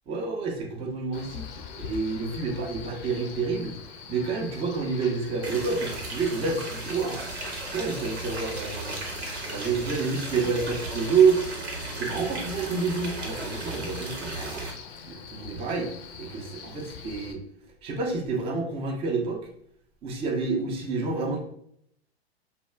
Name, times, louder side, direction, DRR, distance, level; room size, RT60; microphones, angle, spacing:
voice 1, 0.1-1.5 1.7-3.8 4.1-7.3 7.7-9.0 9.5-11.5 11.8-14.7 15.0-15.9 16.2-17.4 17.8-19.4 20.0-21.4, right 5 dB, 20° right, 1 dB, 0.5 m, -28 dB
Male speech man speaking, 1.1-17.3, left 7 dB, 45° left, 0.5 m, -44 dB
sound 1, 5.4-14.7, right 2 dB, 80° right, 0.9 m, -35 dB
2.3 x 2.1 x 3.2 m, 0.68 s
hypercardioid pair, 105°, 32 cm